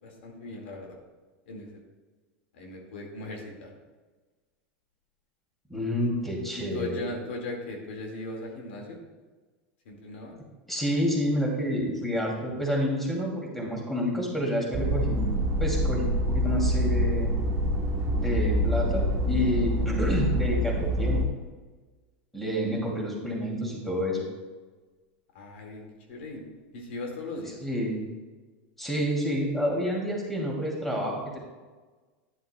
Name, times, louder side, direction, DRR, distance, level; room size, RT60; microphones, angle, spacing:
voice 1, 0.0-0.9 1.5-1.8 2.5-3.7 6.6-9.0 9.9-10.3 25.3-26.4 26.7-27.6, left 2 dB, 80° left, 1 dB, 2.0 m, -38 dB
voice 2, 5.7-7.0 10.7-15.3 15.6-17.4 18.2-21.2 22.3-24.2 27.6-28.0 28.8-31.4, equal, 5° left, -2 dB, 2.5 m, -29 dB
sound 1, 14.7-21.2, equal, 40° right, 1.7 m, -26 dB
11.5 x 10.0 x 2.2 m, 1.3 s
supercardioid pair, 115°, 6 cm